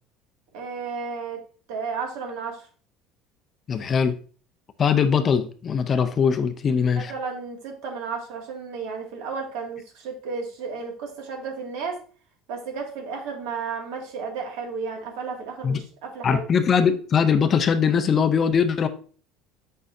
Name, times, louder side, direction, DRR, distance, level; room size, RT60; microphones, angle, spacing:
voice 1, 0.5-1.4 1.7-2.7 7.0-12.0 12.5-16.5, right 5 dB, 80° right, 2.1 m, -33 dB
voice 2, 3.7-4.1 4.8-7.1 15.6-15.8 16.2-18.9, left 6 dB, 25° left, 0.5 m, -21 dB
8.7 x 5.5 x 2.6 m
cardioid pair, 170°, 0 cm